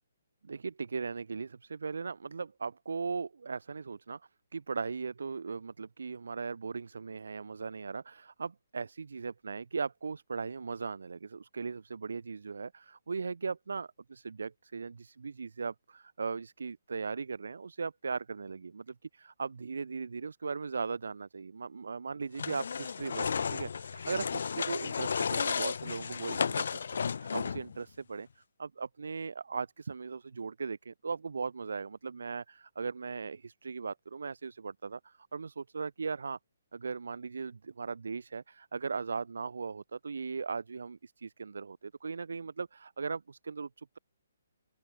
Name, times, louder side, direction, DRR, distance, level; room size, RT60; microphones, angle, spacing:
voice 1, 0.4-4.2 4.5-26.6 27.0-36.4 36.7-44.0, right 5 dB, 85° right, 7.5 m, -38 dB
sound 1, 22.3-27.8, left 6 dB, 70° left, 2.0 m, -33 dB
open air
hypercardioid pair, 165°, 0 cm